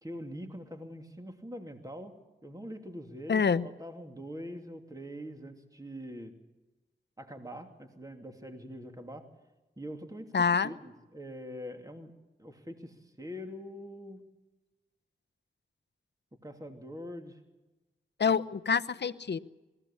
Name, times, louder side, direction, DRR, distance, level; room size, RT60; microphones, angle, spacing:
voice 1, 0.0-2.2 2.4-6.3 7.2-9.3 9.8-14.2 16.4-17.4 18.3-18.4 19.0-19.1, equal, 20° right, 4 dB, 2.7 m, -44 dB
voice 2, 3.3-3.7 10.3-10.7 18.2-19.4, left 6 dB, 70° left, 14 dB, 0.8 m, -26 dB
21.5 x 16.0 x 8.6 m, 1.1 s
cardioid pair, 40°, 19 cm